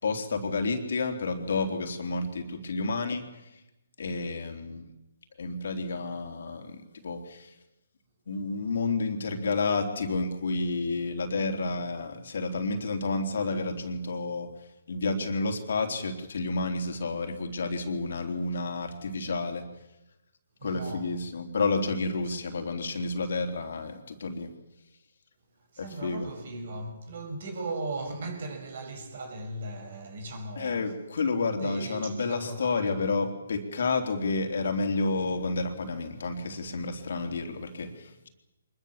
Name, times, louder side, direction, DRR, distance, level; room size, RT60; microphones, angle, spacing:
voice 1, 0.0-3.4 4.0-4.9 5.4-7.5 8.3-14.5 14.9-19.7 20.6-24.5 25.8-26.3 30.6-38.3, left 3 dB, 60° left, 3.6 m, -30 dB
voice 2, 20.6-21.1 22.3-22.4 25.7-30.9 31.6-33.0, right 2 dB, 50° right, 6.3 m, -38 dB
24.5 x 21.5 x 7.4 m
figure-of-eight pair, 140°, 0 cm